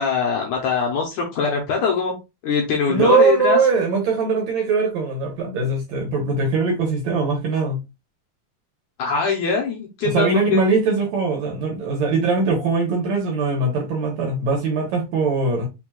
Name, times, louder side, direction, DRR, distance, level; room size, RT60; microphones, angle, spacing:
voice 1, 0.0-2.2 2.4-3.6 9.0-10.6, left 5 dB, 75° left, 1.8 m, -22 dB
voice 2, 2.9-7.8 10.0-15.7, right 4 dB, 70° right, 1.8 m, -21 dB
6.0 x 3.3 x 2.3 m
omnidirectional pair, 4.2 m